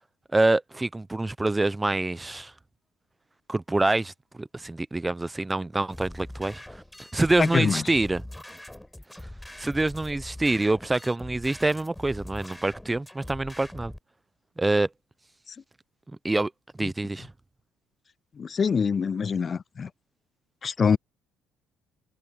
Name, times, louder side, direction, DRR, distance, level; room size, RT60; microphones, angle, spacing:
voice 1, 0.3-2.5 3.5-6.6 7.1-8.2 9.6-13.9 14.6-14.9 16.2-16.5 16.8-17.3, right 2 dB, 15° right, 0.9 m, -26 dB
sound 1, 5.9-14.0, left 1 dB, 5° left, 4.9 m, -43 dB
voice 2, 7.4-7.8 16.8-16.9 18.4-19.9 20.6-21.0, left 6 dB, 40° left, 0.3 m, -25 dB
hypercardioid pair, 55°, 0 cm